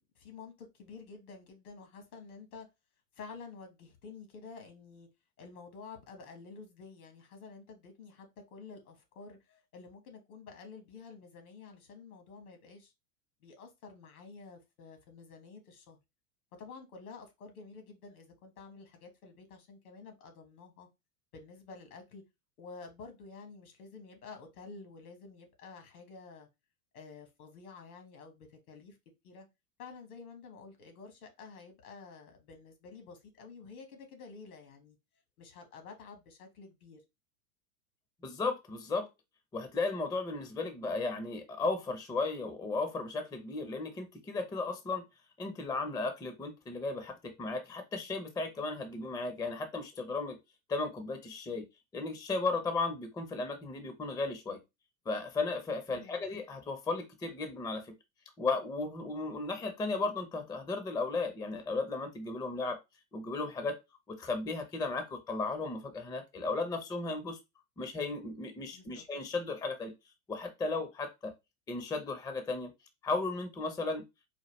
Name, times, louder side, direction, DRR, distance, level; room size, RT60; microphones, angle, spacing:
voice 1, 0.1-2.7 3.1-5.1 5.4-12.9 13.4-16.0 16.6-20.9 21.3-22.2 22.6-26.5 26.9-29.0 29.2-29.5 29.8-35.0 35.4-37.0 55.9-56.2 68.7-69.0, left 4 dB, 70° left, 1.6 m, -50 dB
voice 2, 38.2-39.1 39.5-45.0 45.4-50.4 50.7-51.7 51.9-54.6 55.1-57.9 58.4-62.8 63.1-63.7 64.1-67.4 67.8-69.9 70.3-71.3 71.7-72.7 73.0-74.0, left 3 dB, 10° left, 0.5 m, -35 dB
4.3 x 2.3 x 3.1 m
hypercardioid pair, 100°, 45 cm